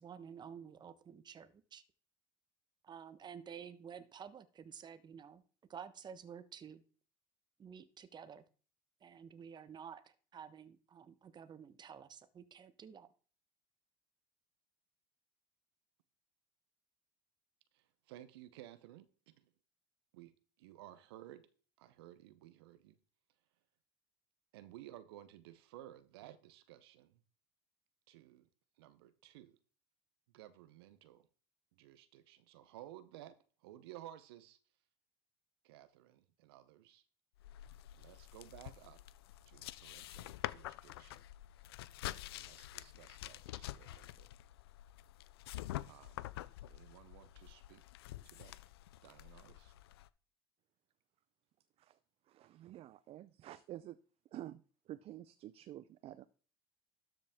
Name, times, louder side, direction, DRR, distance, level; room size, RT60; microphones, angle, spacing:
voice 1, 0.0-1.8 2.8-5.4 5.7-6.8 7.6-8.4 9.0-13.1, right 7 dB, 35° right, 1.0 m, -51 dB
voice 2, 17.7-19.5 20.1-20.3 20.6-21.5 21.8-23.0 24.5-27.2 28.1-28.5 28.8-29.6 30.3-31.3 31.7-34.6 35.6-37.0 37.9-39.0 39.5-41.2 42.3-44.3 45.8-46.3 46.7-47.8 48.2-48.6 49.0-49.7, right 13 dB, 85° right, 0.8 m, -56 dB
sound 1, 37.4-50.1, left 15 dB, 90° left, 0.4 m, -48 dB
voice 3, 52.3-54.0 54.3-56.3, right 13 dB, 50° right, 0.5 m, -50 dB
12.5 x 5.2 x 3.6 m
supercardioid pair, 85°, 13 cm